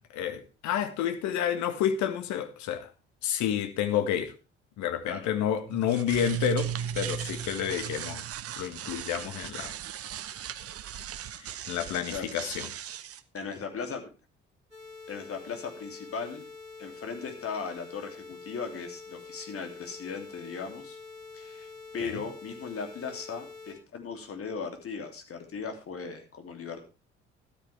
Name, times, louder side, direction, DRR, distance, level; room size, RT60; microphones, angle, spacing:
voice 1, 0.1-2.9 3.2-4.3 4.8-6.7 6.9-8.2 8.6-9.7 11.4-12.7 22.0-22.2, left 10 dB, 55° left, 9 dB, 1.6 m, -30 dB
sound 1, 5.7-13.2, right 10 dB, 45° right, 0.9 m, -36 dB
voice 2, 13.3-14.1 15.1-16.4 16.8-21.0 21.3-26.8, left 5 dB, 40° left, 5 dB, 3.0 m, -38 dB
sound 2, 14.7-23.7, left 4 dB, 85° right, 3.6 m, -46 dB
13.5 x 12.5 x 3.4 m, 0.30 s
figure-of-eight pair, 45°, 34 cm